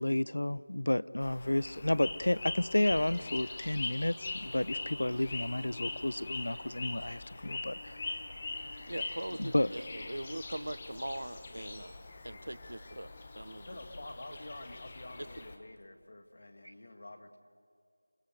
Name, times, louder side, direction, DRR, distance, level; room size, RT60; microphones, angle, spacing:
voice 1, 0.0-8.0 9.4-9.7, left 1 dB, 70° left, 0.6 m, -31 dB
sound 1, 1.2-15.6, left 3 dB, 20° left, 1.2 m, -42 dB
voice 2, 8.5-12.0 12.2-13.8 15.2-15.5 16.6-16.7, right 1 dB, 90° right, 1.2 m, -42 dB
voice 3, 13.7-17.4, left 1 dB, 40° left, 2.0 m, -48 dB
29.0 x 19.5 x 7.9 m
figure-of-eight pair, 175°, 0 cm